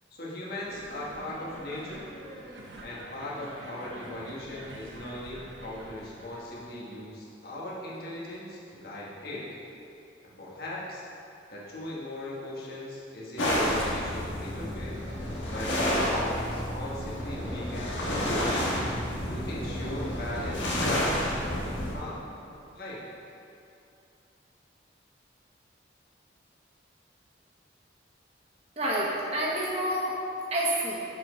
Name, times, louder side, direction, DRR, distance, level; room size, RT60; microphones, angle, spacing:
voice 1, 0.1-2.1 2.8-9.5 10.2-11.0 11.5-15.0 15.5-18.8 19.3-22.3 22.7-23.0, left 1 dB, 55° left, -6 dB, 1.5 m, -39 dB
sound 1, 0.7-6.7, right 1 dB, 85° right, 0.9 m, -46 dB
sound 2, 13.4-21.9, equal, 85° left, 1.5 m, -30 dB
voice 2, 28.8-31.0, right 1 dB, 35° right, -4 dB, 1.3 m, -28 dB
7.2 x 4.9 x 5.0 m, 2.7 s
head